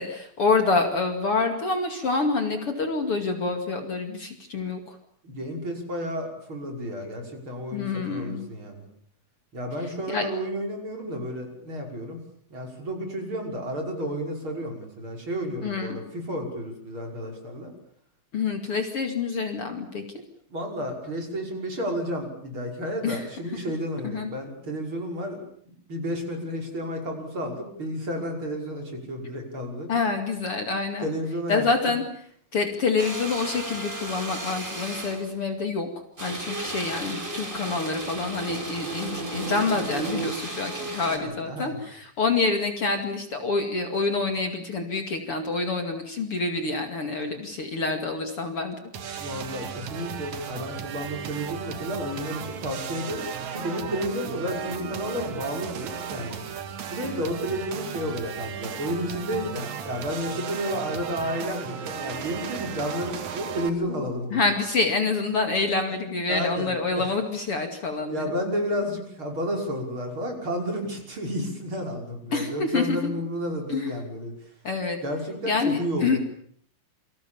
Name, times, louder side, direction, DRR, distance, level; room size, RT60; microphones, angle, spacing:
voice 1, 0.0-4.8 7.7-8.5 10.1-10.3 15.6-16.0 18.3-20.0 23.0-23.3 24.0-24.3 29.9-31.1 31.5-32.0 32.5-35.9 36.2-48.7 49.1-49.3 64.3-68.3 72.3-73.1 73.7-73.9 74.6-75.0 75.5-76.2, left 4 dB, 45° left, 5 dB, 3.1 m, -27 dB
voice 2, 5.2-8.8 9.5-12.2 12.5-17.7 20.5-25.4 25.9-29.9 31.0-31.9 41.1-41.8 49.2-56.4 56.9-64.4 66.3-67.1 68.1-74.3 75.0-76.2, equal, 35° right, 3 dB, 6.5 m, -31 dB
sound 1, 33.0-35.3 36.2-41.2, right 2 dB, 15° right, 4.8 m, -34 dB
sound 2, 48.9-63.7, right 7 dB, 60° right, 3.1 m, -35 dB
28.5 x 25.0 x 7.3 m, 0.63 s
omnidirectional pair, 3.8 m